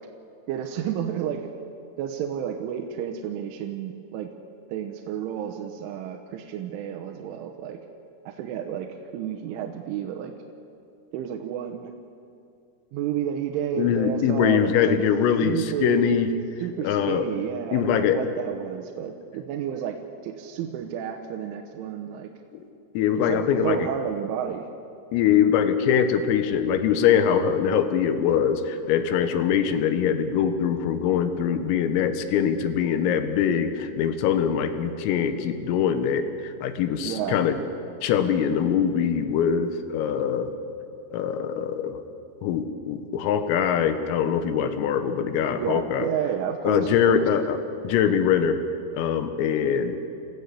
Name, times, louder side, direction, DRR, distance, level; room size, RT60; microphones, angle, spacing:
voice 1, 0.5-1.5 2.0-4.3 4.7-7.8 8.3-10.3 11.1-12.0 12.9-15.0 15.4-16.2 16.6-20.0 20.2-22.3 23.2-24.7 37.0-37.4 45.6-47.3, right 9 dB, 75° right, 3 dB, 3.4 m, -31 dB
voice 2, 13.8-16.3 16.8-17.3 17.7-18.2 22.5-22.6 23.0-23.9 25.1-37.6 38.0-40.5 41.1-42.0 42.4-46.1 46.7-47.6 47.8-48.6 48.9-50.0, left 8 dB, 90° left, 9 dB, 3.9 m, -23 dB
29.0 x 14.5 x 8.4 m, 2.6 s
omnidirectional pair, 5.9 m